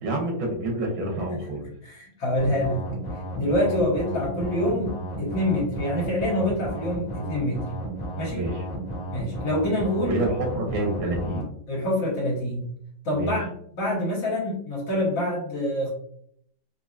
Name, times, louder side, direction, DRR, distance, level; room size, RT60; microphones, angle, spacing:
voice 1, 0.0-1.7 8.3-8.7 10.0-11.5 13.1-13.3, right 1 dB, 85° right, 1 dB, 1.7 m, -28 dB
voice 2, 1.8-2.8 3.3-7.7 8.2-8.5 9.1-10.2 11.7-12.7 13.1-13.5 13.8-15.9, left 1 dB, 70° left, -5 dB, 1.9 m, -26 dB
sound 1, 2.4-11.4, right 1 dB, 50° left, 1.6 m, -33 dB
4.6 x 2.4 x 2.5 m, 0.67 s
omnidirectional pair, 2.1 m